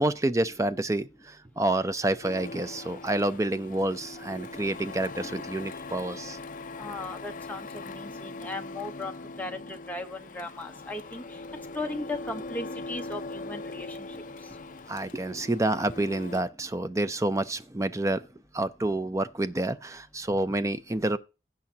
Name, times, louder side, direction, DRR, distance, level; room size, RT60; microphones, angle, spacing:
voice 1, 0.0-6.4 14.9-18.3 18.5-21.2, right 2 dB, 15° right, 0.4 m, -28 dB
Printer, 2.2-16.4, left 3 dB, 45° left, 0.4 m, -41 dB
voice 2, 6.8-11.2 11.7-14.1, left 2 dB, 10° left, 0.9 m, -37 dB
16.5 x 6.2 x 2.8 m
head